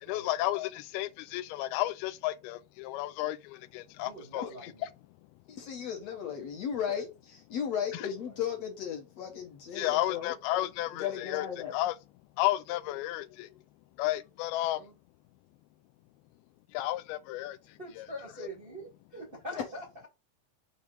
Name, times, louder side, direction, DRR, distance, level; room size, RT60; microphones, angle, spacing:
voice 1, 0.0-4.5 9.8-11.5 11.7-12.0 12.4-13.5 14.0-14.8 16.7-17.6 18.0-18.1 18.4-18.5, left 15 dB, 85° left, 2.4 m, -32 dB
voice 2, 4.0-4.9 6.9-7.0 7.7-8.4 14.6-14.9 17.8-18.9 19.1-19.9, equal, 40° right, 0.7 m, -44 dB
voice 3, 5.5-7.1 7.5-10.3 10.9-11.8 19.6-19.7, left 8 dB, 60° left, 1.8 m, -35 dB
7.0 x 4.4 x 3.9 m
omnidirectional pair, 4.5 m